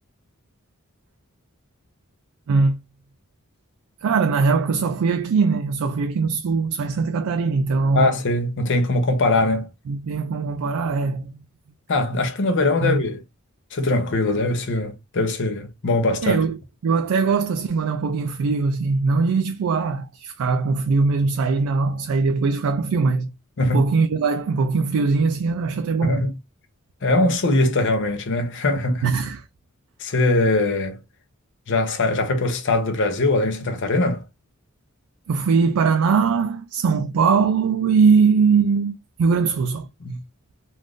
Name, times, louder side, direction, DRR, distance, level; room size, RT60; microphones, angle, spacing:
voice 1, 2.5-2.8 4.0-8.1 9.9-11.4 12.8-13.0 16.2-23.3 23.7-26.2 29.0-29.5 35.3-39.9, right 4 dB, 70° right, 0.4 m, -21 dB
voice 2, 8.0-9.7 11.9-13.2 13.7-16.4 23.6-23.8 26.0-26.3 27.0-29.1 30.0-31.0 31.7-34.2 40.0-40.2, left 2 dB, 60° left, 0.6 m, -21 dB
2.5 x 2.4 x 3.5 m
head